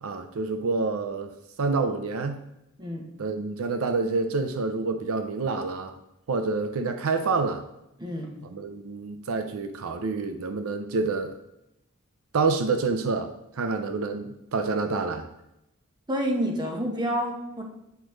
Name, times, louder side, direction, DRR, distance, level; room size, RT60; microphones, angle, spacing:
voice 1, 0.0-2.4 3.2-5.9 6.3-7.6 8.5-11.4 12.3-13.3 13.6-15.3, right 4 dB, 75° right, 7 dB, 0.5 m, -27 dB
voice 2, 8.0-8.3 16.1-17.6, equal, 20° right, 0 dB, 1.1 m, -28 dB
8.1 x 5.1 x 3.1 m, 0.85 s
head